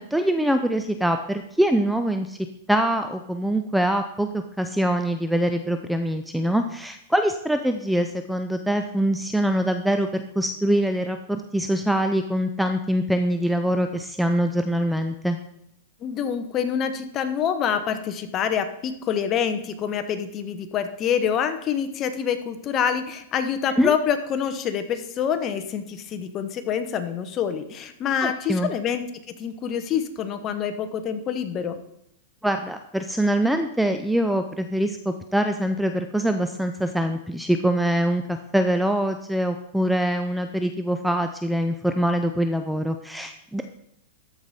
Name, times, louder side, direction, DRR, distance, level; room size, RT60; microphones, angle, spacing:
voice 1, 0.0-2.4 2.7-15.4 23.8-23.9 28.2-28.7 32.4-43.6, right 1 dB, ahead, 7 dB, 0.4 m, -24 dB
voice 2, 16.0-29.0 29.4-31.8, left 8 dB, 30° left, 9 dB, 0.9 m, -26 dB
13.5 x 4.8 x 4.2 m, 0.77 s
hypercardioid pair, 135°, 0 cm